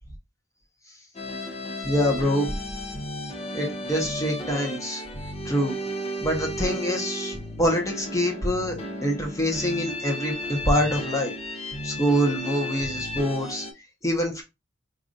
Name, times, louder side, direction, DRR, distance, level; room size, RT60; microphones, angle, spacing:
sound 1, 1.1-13.7, left 1 dB, 35° left, 0.7 m, -34 dB
voice 1, 1.8-2.5 3.5-5.0 5.4-5.8 6.2-11.3 11.8-13.7 14.0-14.4, equal, 20° left, 1 dB, 1.1 m, -25 dB
4.8 x 2.6 x 2.6 m, 0.25 s
head